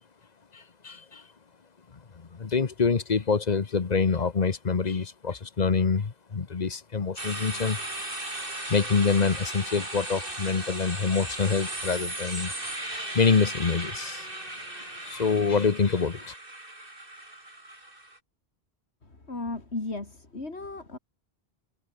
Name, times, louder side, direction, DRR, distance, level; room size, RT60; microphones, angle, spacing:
voice 1, 0.5-1.2 2.3-7.8 8.7-12.8 13.1-14.3 14.8-16.3, left 5 dB, 40° left, 1.1 m, -26 dB
sound 1, 7.2-18.2, right 1 dB, 55° right, 5.4 m, -37 dB
voice 2, 19.0-21.0, left 2 dB, 80° left, 3.8 m, -35 dB
omnidirectional pair, 1.1 m